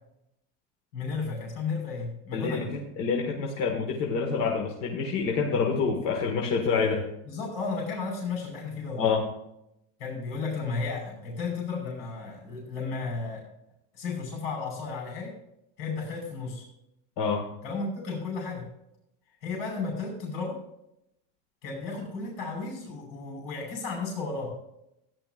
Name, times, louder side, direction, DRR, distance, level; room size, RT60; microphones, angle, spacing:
voice 1, 0.9-2.8 7.3-9.0 10.0-13.4 13.9-15.4 15.8-16.7 17.6-18.7 19.4-20.6 21.6-24.6, left 4 dB, 80° left, -3 dB, 5.2 m, -33 dB
voice 2, 2.3-2.6 3.0-7.1 9.0-9.2 17.2-17.5, left 5 dB, 50° left, 0 dB, 1.8 m, -27 dB
16.0 x 11.0 x 2.5 m, 0.81 s
supercardioid pair, 155°, 29 cm